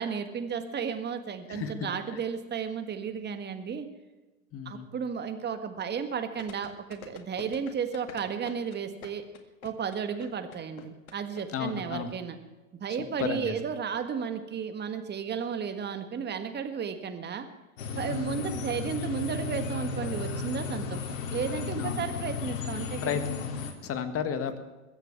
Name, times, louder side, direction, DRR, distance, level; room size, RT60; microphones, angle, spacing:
voice 1, 0.0-3.9 4.7-9.2 9.6-12.4 12.8-17.5 18.0-23.2, right 6 dB, 25° right, 8 dB, 1.7 m, -33 dB
voice 2, 1.5-2.2 4.5-4.9 11.5-12.1 13.0-13.5 18.1-18.4 21.7-22.0 23.0-24.6, left 7 dB, 35° left, 9 dB, 1.7 m, -33 dB
sound 1, 6.4-11.4 11.7-11.8, left 8 dB, 80° left, 2.0 m, -46 dB
sound 2, 17.8-23.7, left 5 dB, 65° left, 2.9 m, -34 dB
22.0 x 8.2 x 7.1 m, 1.2 s
hypercardioid pair, 105°, 42 cm